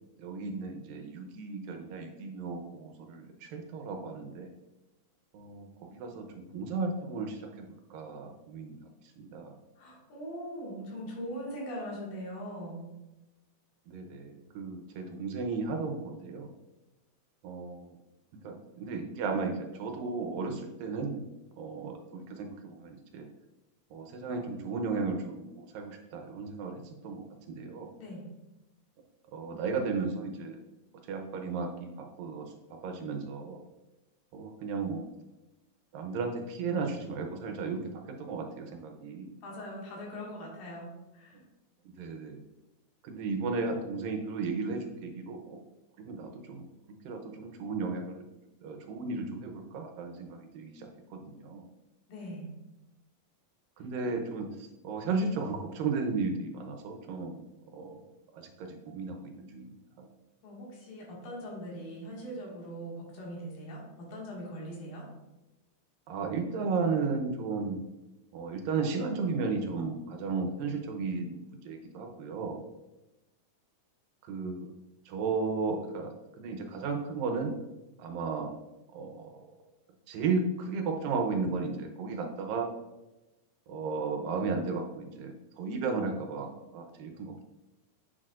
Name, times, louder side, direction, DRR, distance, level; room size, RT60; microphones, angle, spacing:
voice 1, 0.2-4.5 5.3-8.8 9.2-9.6 13.9-16.5 17.4-17.9 18.4-21.2 21.6-23.3 23.9-27.9 29.3-30.6 31.1-32.5 32.8-33.6 34.3-35.1 35.9-37.8 38.2-39.3 41.3-41.4 41.8-42.4 43.0-45.6 46.0-46.6 47.0-48.2 48.6-51.6 53.8-57.4 57.7-58.0 58.3-59.7 60.0-60.1 66.1-67.8 68.3-72.6 74.2-74.7 75.1-76.1 76.4-77.6 78.0-78.5 78.9-79.5 80.1-82.7 83.7-87.4, right 4 dB, 80° right, 4 dB, 2.5 m, -34 dB
voice 2, 9.8-12.9 28.0-28.3 39.4-41.4 52.1-52.5 60.4-65.1, equal, 90° left, -4 dB, 3.7 m, -41 dB
8.2 x 6.4 x 2.5 m, 1.0 s
omnidirectional pair, 3.9 m